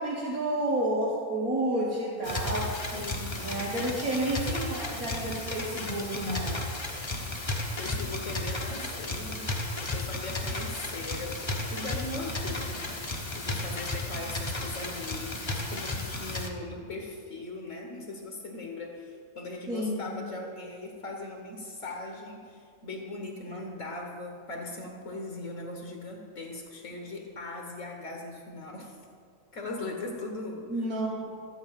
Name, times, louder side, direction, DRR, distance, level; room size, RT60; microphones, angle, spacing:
voice 1, 0.0-2.7 3.4-6.6 19.7-20.1 30.7-31.3, right 1 dB, 85° right, -4 dB, 1.9 m, -30 dB
sound 1, 2.2-16.5, left 2 dB, 20° left, 0.9 m, -34 dB
voice 2, 2.9-3.6 7.1-7.4 7.8-13.0 13.3-29.0 29.5-30.9, left 2 dB, 65° left, 1 dB, 1.6 m, -39 dB
13.5 x 8.1 x 5.7 m, 2.2 s
omnidirectional pair, 1.4 m